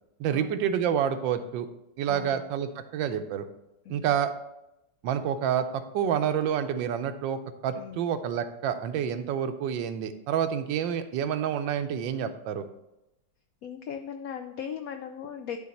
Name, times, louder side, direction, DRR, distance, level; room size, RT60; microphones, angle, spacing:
voice 1, 0.2-1.7 2.0-3.4 3.9-4.3 5.0-12.6, right 8 dB, 80° right, 9 dB, 1.3 m, -28 dB
voice 2, 13.6-15.6, left 8 dB, 80° left, 7 dB, 0.7 m, -38 dB
11.0 x 3.8 x 4.2 m, 0.89 s
omnidirectional pair, 2.0 m